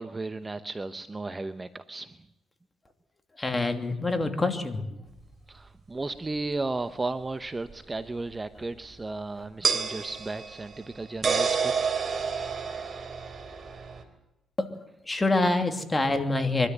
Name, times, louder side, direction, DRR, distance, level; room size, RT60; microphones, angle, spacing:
voice 1, 0.0-2.2 5.5-11.9, right 3 dB, 20° right, 11 dB, 0.9 m, -34 dB
voice 2, 3.4-4.8 14.6-14.7 15.1-16.7, left 2 dB, 20° left, 6 dB, 2.8 m, -26 dB
sound 1, 5.2-5.3 7.7-7.8 9.6-14.0, right 5 dB, 40° right, 3.4 m, -29 dB
23.5 x 13.5 x 9.3 m, 0.93 s
cardioid pair, 90°, 0 cm